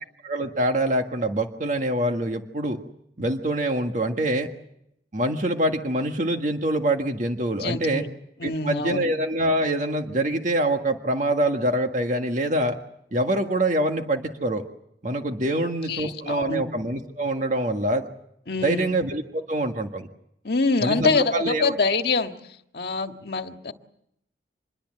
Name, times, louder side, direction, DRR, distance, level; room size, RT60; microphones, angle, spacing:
voice 1, 0.2-2.8 3.2-4.5 5.1-8.0 8.4-12.8 13.1-14.6 15.0-18.0 18.6-20.1 20.8-21.7, right 1 dB, 45° right, 4 dB, 1.7 m, -25 dB
voice 2, 7.6-8.1 8.4-9.1 15.5-16.7 18.5-18.9 20.4-22.3 22.7-23.7, left 4 dB, 60° left, 6 dB, 1.7 m, -25 dB
26.0 x 22.0 x 7.7 m, 0.75 s
head